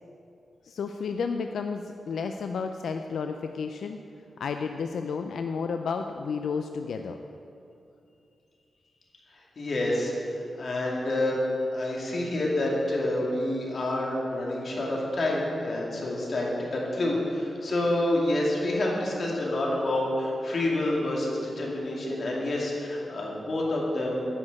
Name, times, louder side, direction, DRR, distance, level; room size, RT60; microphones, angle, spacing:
voice 1, 0.6-4.0 4.4-7.2, left 5 dB, 90° left, 6 dB, 0.4 m, -32 dB
voice 2, 9.6-11.4 11.7-24.3, left 1 dB, 50° left, -3 dB, 2.4 m, -28 dB
9.9 x 6.3 x 8.6 m, 2.6 s
wide cardioid pair, 130°, 0 cm